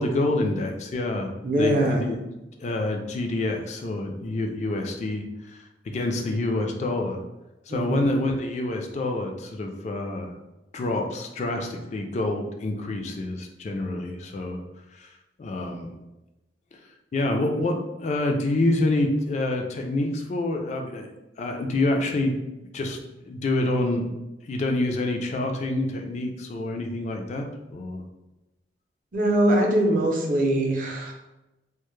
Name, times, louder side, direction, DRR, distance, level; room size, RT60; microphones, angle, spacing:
voice 1, 0.0-2.2 2.6-5.6 5.9-7.2 7.7-10.3 10.7-14.6 14.9-15.1 15.4-15.9 17.1-21.1 21.4-22.4 22.7-23.0 23.3-24.1 24.5-28.1, left 2 dB, 40° left, 3 dB, 0.3 m, -27 dB
voice 2, 1.4-2.0 7.7-8.1 29.1-31.1, right 1 dB, 50° right, 0 dB, 0.5 m, -22 dB
2.1 x 2.0 x 3.0 m, 1.0 s
head